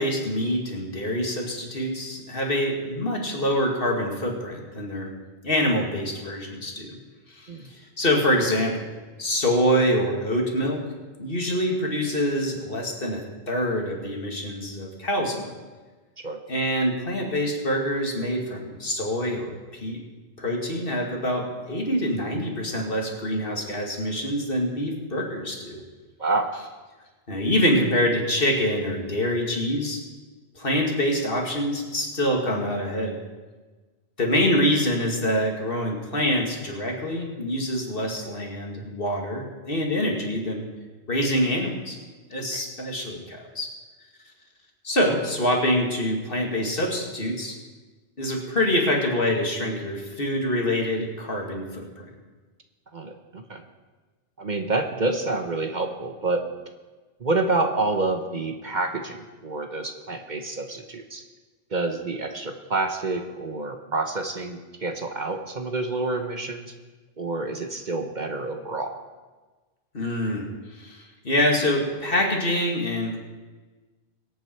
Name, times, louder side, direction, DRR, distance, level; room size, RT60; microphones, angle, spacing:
voice 1, 0.0-5.1 5.4-7.0 7.3-7.5 8.0-8.8 9.2-10.8 11.2-15.5 16.5-20.0 20.4-25.8 27.3-30.0 30.6-33.2 34.2-40.7 41.1-42.0 42.3-43.7 44.8-47.5 48.2-52.1 69.9-73.2, equal, 55° left, 1 dB, 2.4 m, -25 dB
voice 2, 26.2-26.5 42.5-42.6 52.9-53.6 54.4-56.4 57.2-61.2 61.7-66.7 67.2-68.9, right 3 dB, 45° right, 5 dB, 1.1 m, -28 dB
23.0 x 8.7 x 4.5 m, 1.3 s
omnidirectional pair, 1.1 m